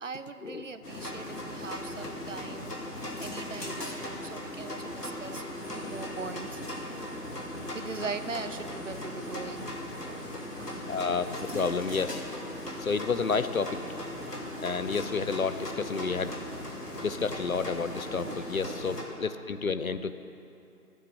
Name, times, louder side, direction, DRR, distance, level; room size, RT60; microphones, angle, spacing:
voice 1, 0.0-2.7 3.2-5.4 5.7-6.6 7.7-9.7 10.1-10.3 10.6-10.8 18.2-19.1 19.6-19.8, right 4 dB, 55° right, 10 dB, 0.6 m, -40 dB
sound 1, 0.8-19.0, left 1 dB, 90° left, 2.5 m, -38 dB
sound 2, 4.9-14.7, right 2 dB, 5° right, 1.2 m, -52 dB
voice 2, 10.9-12.2 12.8-13.8 14.6-16.4 17.0-20.1, left 5 dB, 60° left, 11 dB, 0.7 m, -30 dB
13.0 x 9.3 x 8.1 m, 2.7 s
figure-of-eight pair, 160°, 46 cm